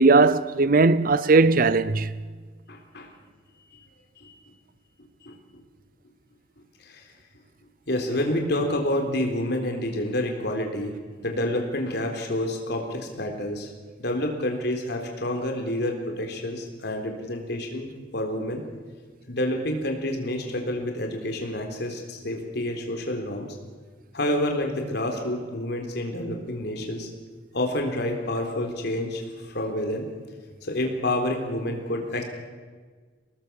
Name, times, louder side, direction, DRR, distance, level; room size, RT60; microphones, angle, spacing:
voice 1, 0.0-2.1, right 3 dB, 50° right, 0.7 m, -18 dB
voice 2, 2.7-3.1 3.7-3.8 4.2-4.4 5.2-5.6 6.8-7.0 7.9-10.9 11.2-13.7 14.0-18.6 19.3-23.6 24.1-27.1 27.5-30.1 30.6-32.2, left 1 dB, 65° left, 3.9 m, -28 dB
24.5 x 19.5 x 7.1 m
head